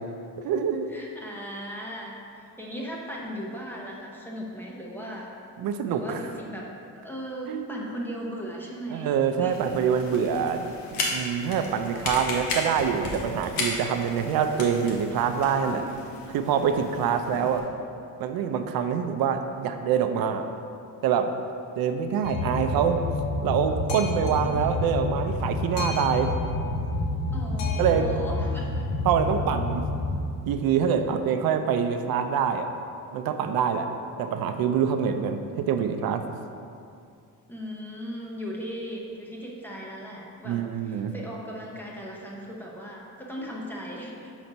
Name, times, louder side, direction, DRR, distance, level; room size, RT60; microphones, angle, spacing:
voice 1, 0.4-0.9 5.6-6.2 7.5-7.9 8.9-15.8 16.3-17.6 18.2-20.5 21.0-21.3 21.8-23.0 23.4-26.3 27.8-28.1 29.0-29.9 30.5-32.7 33.1-33.9 34.2-36.2 40.4-41.1, right 7 dB, 85° right, 7 dB, 0.5 m, -25 dB
voice 2, 0.9-5.3 5.9-9.1 9.4-9.7 24.2-24.9 27.3-28.9 37.5-44.3, equal, 5° left, -3 dB, 0.7 m, -38 dB
sound 1, 9.5-17.6, left 2 dB, 90° left, 1.2 m, -35 dB
Boat Water vehicle, 22.2-30.2, left 2 dB, 70° left, 0.9 m, -29 dB
5.9 x 4.1 x 5.3 m, 2.5 s
cardioid pair, 165°, 35 cm